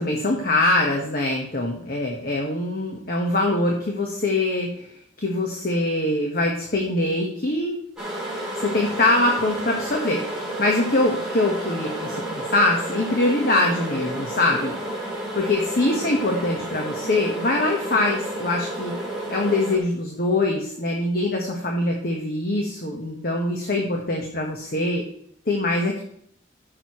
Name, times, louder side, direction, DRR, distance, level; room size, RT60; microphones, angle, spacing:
voice 1, 0.0-4.9 5.2-7.8 8.6-14.7 15.3-18.9 19.3-25.0 25.5-26.0, left 2 dB, 55° left, 0 dB, 1.4 m, -23 dB
sound 1, 8.0-19.8, right 1 dB, 5° right, 3.6 m, -31 dB
13.5 x 6.7 x 3.2 m, 0.66 s
head